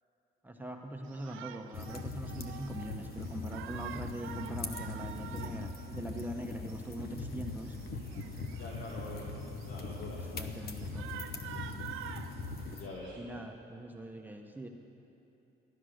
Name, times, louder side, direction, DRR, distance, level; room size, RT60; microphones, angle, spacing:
voice 1, 0.4-7.8 10.1-11.2 13.1-14.7, right 1 dB, 10° right, 2 dB, 1.0 m, -42 dB
Shout, 1.0-13.2, right 10 dB, 85° right, 0.6 m, -48 dB
sound 1, 1.7-12.9, left 3 dB, 50° left, 1.0 m, -41 dB
voice 2, 8.5-9.3 9.6-10.2 12.7-13.2, left 3 dB, 75° left, -3 dB, 2.0 m, -44 dB
14.0 x 10.5 x 6.5 m, 3.0 s
cardioid pair, 90°, 20 cm